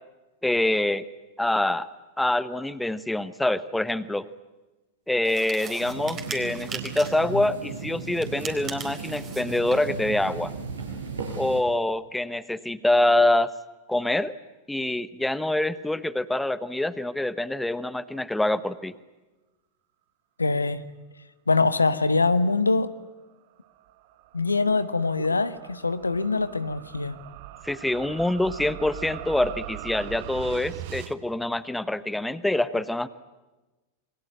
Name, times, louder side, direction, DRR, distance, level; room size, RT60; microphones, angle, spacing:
voice 1, 0.4-1.1 1.4-1.9 2.2-4.3 5.1-10.5 11.3-13.5 13.9-14.3 14.7-18.9 27.6-33.1, left 1 dB, 5° left, 15 dB, 1.0 m, -25 dB
sound 1, 5.2-7.3 8.1-9.9, right 6 dB, 25° right, 4.0 m, -39 dB
sound 2, 5.8-11.6, right 4 dB, 75° right, 5.9 m, -36 dB
voice 2, 20.4-20.8 21.5-22.9 24.3-27.2, left 3 dB, 80° left, 13 dB, 1.2 m, -23 dB
sound 3, 23.3-31.1, right 13 dB, 50° right, 1.4 m, -41 dB
28.0 x 23.0 x 9.1 m, 1.1 s
figure-of-eight pair, 90°, 0 cm